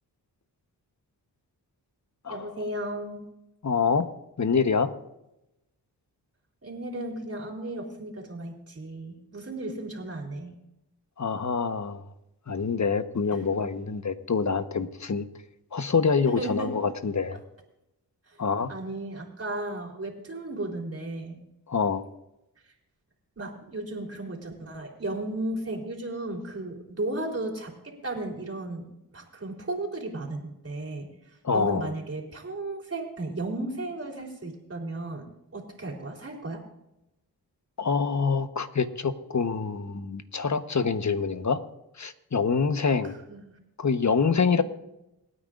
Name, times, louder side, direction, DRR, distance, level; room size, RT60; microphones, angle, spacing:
voice 1, 2.3-3.2 6.6-10.6 13.3-13.6 16.3-16.7 18.7-21.4 23.4-31.1 31.5-36.6 43.3-43.6 44.5-44.6, right 2 dB, 35° right, 0 dB, 3.8 m, -35 dB
voice 2, 3.6-4.1 4.4-4.9 11.2-12.0 12.5-15.3 15.7-17.4 18.4-18.7 21.7-22.0 31.4-31.9 37.8-41.6 42.0-43.2 43.8-44.6, left 5 dB, 40° left, 9 dB, 1.2 m, -26 dB
28.0 x 9.4 x 2.6 m, 0.89 s
cardioid pair, 50°, 42 cm